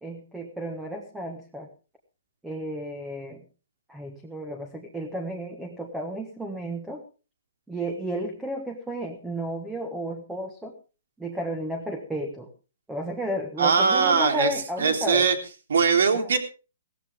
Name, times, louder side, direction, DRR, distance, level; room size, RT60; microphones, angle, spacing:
voice 1, 0.0-1.7 2.4-3.4 3.9-7.0 7.7-10.7 11.2-12.5 12.9-15.2 16.1-16.3, right 1 dB, 5° right, 4 dB, 1.4 m, -32 dB
voice 2, 13.6-14.5 14.8-15.4 15.7-16.4, right 5 dB, 75° right, 7 dB, 3.3 m, -21 dB
17.0 x 14.5 x 3.6 m, 0.33 s
hypercardioid pair, 165°, 0 cm